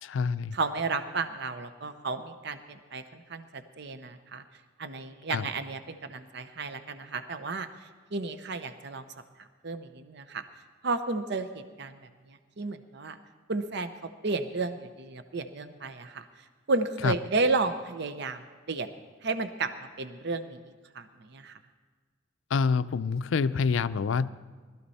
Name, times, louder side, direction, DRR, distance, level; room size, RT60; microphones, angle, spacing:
voice 1, 0.0-0.6 5.3-5.5 17.0-17.1 22.5-24.3, left 5 dB, 80° left, 14 dB, 0.4 m, -26 dB
voice 2, 0.5-4.4 4.8-9.1 9.4-10.4 10.8-12.0 12.3-13.2 13.5-13.9 14.2-16.2 16.7-18.9 19.2-19.7 20.0-20.6 20.9-21.6, right 3 dB, 60° right, 10 dB, 0.7 m, -32 dB
20.0 x 13.0 x 4.2 m, 1.5 s
head